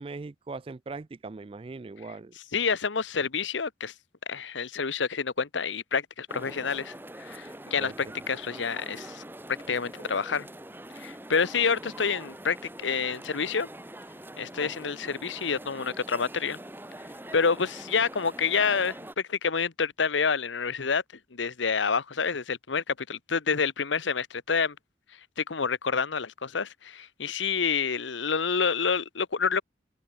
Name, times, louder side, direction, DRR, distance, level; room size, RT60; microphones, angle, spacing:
voice 1, 0.0-2.3 7.8-8.1, right 3 dB, 30° right, 0.3 m, -40 dB
voice 2, 2.5-3.9 4.3-9.2 9.7-10.5 11.0-13.7 14.4-16.6 17.3-19.0 19.3-21.0 21.3-24.7 25.4-29.6, left 5 dB, 85° left, 1.0 m, -28 dB
sound 1, 6.3-19.1, right 1 dB, 10° right, 3.3 m, -44 dB
head